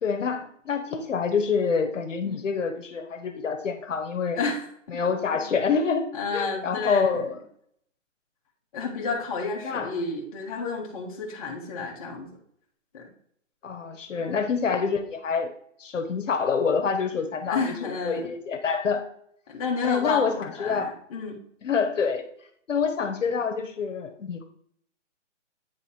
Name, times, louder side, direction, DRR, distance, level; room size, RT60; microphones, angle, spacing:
voice 1, 0.0-4.4 4.9-6.1 6.3-7.4 9.6-9.9 13.6-15.5 15.8-19.1 19.8-20.9 21.6-22.3 22.7-24.4, left 5 dB, 80° left, 6 dB, 1.2 m, -27 dB
voice 2, 4.3-4.7 5.3-5.5 6.1-7.3 8.7-12.3 12.9-13.1 14.2-14.4 17.4-18.3 19.5-21.4, left 4 dB, 30° left, -1 dB, 1.4 m, -31 dB
9.4 x 3.2 x 4.3 m, 0.65 s
hypercardioid pair, 165°, 38 cm